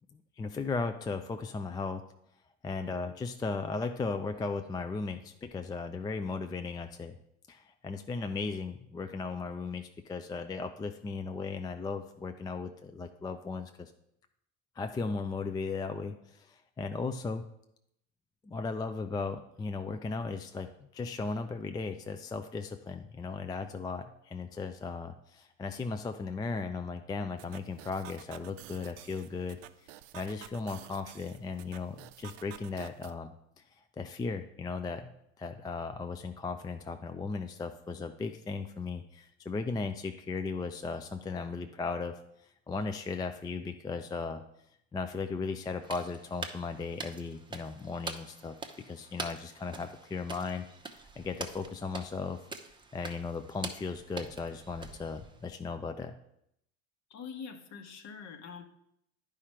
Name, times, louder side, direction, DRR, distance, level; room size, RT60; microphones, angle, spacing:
voice 1, 0.4-2.0 2.6-7.1 7.5-13.9 14.8-17.4 18.4-33.6 34.0-44.4 44.9-48.6 48.9-50.7 51.2-52.4 52.9-56.1, left 4 dB, 10° left, 7 dB, 0.4 m, -36 dB
sound 1, 27.4-33.1, right 13 dB, 75° right, 0.6 m, -51 dB
sound 2, 45.8-55.6, right 3 dB, 10° right, 0.8 m, -45 dB
voice 2, 57.1-58.6, left 6 dB, 45° left, 8 dB, 1.2 m, -44 dB
10.0 x 5.0 x 4.3 m, 0.76 s
hypercardioid pair, 85°, 37 cm